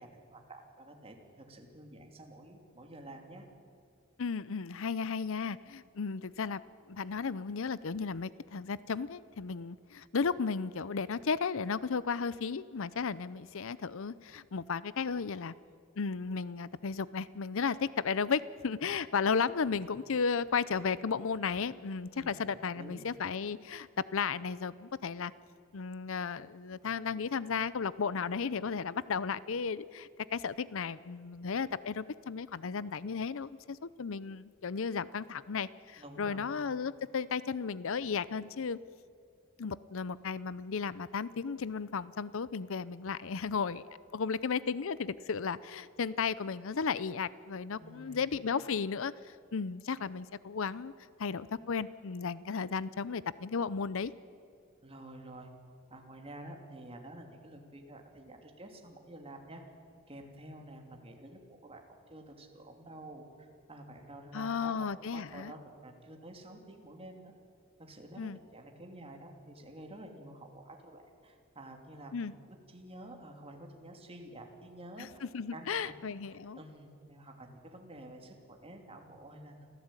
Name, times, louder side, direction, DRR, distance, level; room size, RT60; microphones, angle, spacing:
voice 1, 0.0-3.5 19.6-19.8 22.1-22.4 22.7-23.1 36.0-36.5 47.8-48.3 54.8-55.5 55.9-59.6 60.1-67.3 67.8-75.2 75.5-79.8, right 1 dB, 30° right, 3 dB, 3.0 m, -50 dB
voice 2, 4.2-6.6 6.9-15.5 16.0-25.3 25.7-38.8 39.6-50.9 51.2-54.1 64.3-65.5 68.2-68.4 72.1-72.3 75.0-76.6, left 5 dB, 70° left, 18 dB, 0.6 m, -34 dB
27.0 x 15.5 x 9.0 m, 2.3 s
head